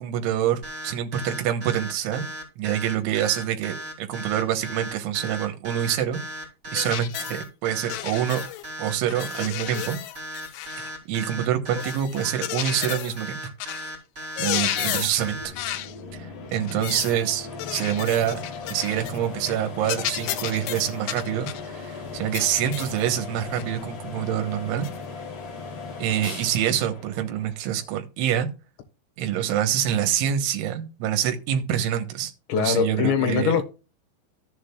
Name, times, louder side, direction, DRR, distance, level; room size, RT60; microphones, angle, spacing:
voice 1, 0.0-2.3 2.6-6.2 6.7-8.4 8.8-10.0 10.8-13.4 14.4-15.5 16.1-16.3 16.5-18.4 18.7-24.9 26.0-28.5 29.2-32.3 32.6-33.6, right 10 dB, 80° right, 3.5 m, -26 dB
sound 1, 0.6-15.5, equal, 20° right, 1.9 m, -36 dB
sound 2, 6.8-7.4 7.9-8.7 9.1-11.0 11.7-13.2 13.6-13.9 14.2-15.2 15.6-15.9 16.5-17.2 17.6-19.2 19.5-19.6 19.9-21.7 22.3-23.0 23.6-23.7 24.8-25.0, left 13 dB, 90° left, 3.2 m, -32 dB
sound 3, 14.5-28.0, left 4 dB, 40° left, 3.0 m, -38 dB
voice 2, 32.5-33.6, left 8 dB, 70° left, 3.4 m, -22 dB
13.5 x 7.4 x 2.3 m
omnidirectional pair, 5.4 m